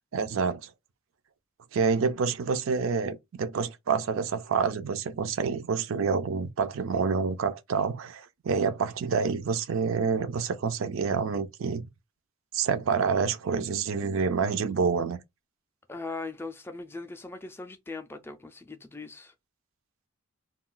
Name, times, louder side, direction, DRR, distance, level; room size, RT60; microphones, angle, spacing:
voice 1, 0.1-0.7 1.7-11.9 12.5-15.2, right 5 dB, 75° right, 0.4 m, -28 dB
voice 2, 15.9-19.3, left 3 dB, 10° left, 0.3 m, -39 dB
2.3 x 2.3 x 3.7 m
head